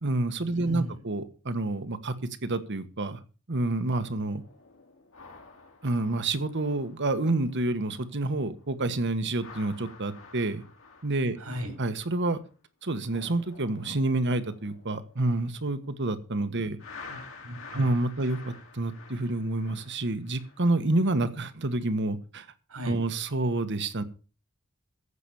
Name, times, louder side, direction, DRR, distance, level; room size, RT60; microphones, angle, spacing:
voice 1, 0.0-2.1 2.4-3.2 3.5-4.4 5.8-10.6 11.0-11.4 11.8-12.4 12.8-16.8 17.7-22.5 22.8-24.0, right 2 dB, 55° right, 12 dB, 1.4 m, -28 dB
voice 2, 0.5-1.0 11.4-11.7 17.1-17.9 18.2-18.3 22.7-23.0, equal, 90° right, 6 dB, 5.5 m, -37 dB
sound 1, 4.1-8.3 8.5-8.8 9.3-12.5 12.8-16.1 16.8-21.3 21.7-21.9, left 4 dB, 70° left, 3.7 m, -50 dB
15.0 x 6.1 x 7.0 m, 0.36 s
head